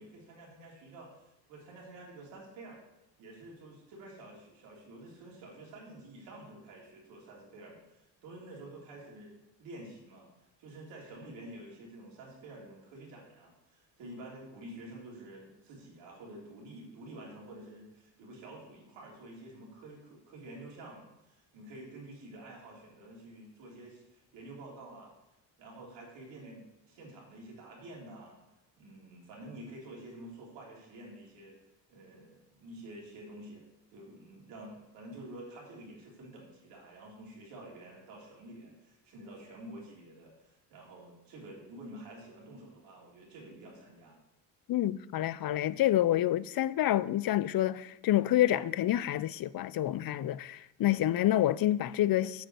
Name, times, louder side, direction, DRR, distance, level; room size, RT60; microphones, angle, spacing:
voice 1, 0.0-2.8 3.2-10.3 10.6-25.1 25.6-28.4 28.8-31.6 31.9-33.6 33.9-44.2, right 1 dB, 90° right, 3.5 m, -49 dB
voice 2, 44.7-52.5, left 13 dB, 55° left, 0.5 m, -28 dB
8.6 x 5.1 x 7.7 m
supercardioid pair, 65°, 43 cm